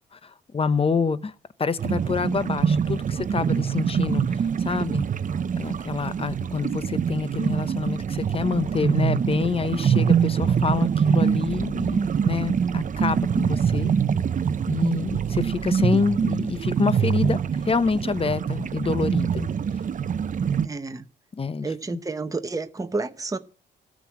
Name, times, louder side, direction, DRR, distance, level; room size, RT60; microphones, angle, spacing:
voice 1, 0.1-1.3 1.6-5.0 5.6-13.9 14.7-19.5 21.4-21.7, left 5 dB, 30° left, 0.8 m, -27 dB
sound 1, 1.8-20.7, right 7 dB, 45° right, 0.6 m, -24 dB
voice 2, 20.6-21.1 21.6-23.4, right 3 dB, 20° right, 0.9 m, -30 dB
13.5 x 6.2 x 7.4 m
cardioid pair, 80°, 19 cm